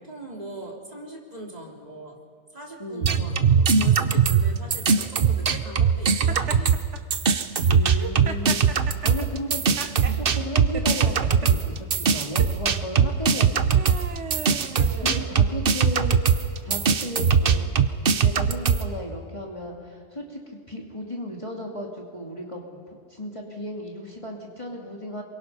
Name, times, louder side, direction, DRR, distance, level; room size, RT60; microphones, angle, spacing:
voice 1, 0.1-2.2 2.5-6.9 14.6-15.2 16.6-16.8, right 1 dB, 35° right, -1 dB, 3.3 m, -40 dB
voice 2, 2.8-3.2 7.6-9.7 10.1-14.1 15.0-17.7 18.0-20.4 20.7-22.8 23.1-25.2, left 1 dB, 25° left, -1 dB, 2.6 m, -35 dB
sound 1, 3.0-6.8 7.1-18.8, right 6 dB, 55° right, 1.0 m, -21 dB
Laughter, 6.3-7.0 7.8-10.2 10.7-11.5 12.2-12.5 13.3-15.5, right 6 dB, 80° right, 1.4 m, -37 dB
27.5 x 23.5 x 5.7 m, 2.1 s
omnidirectional pair, 1.2 m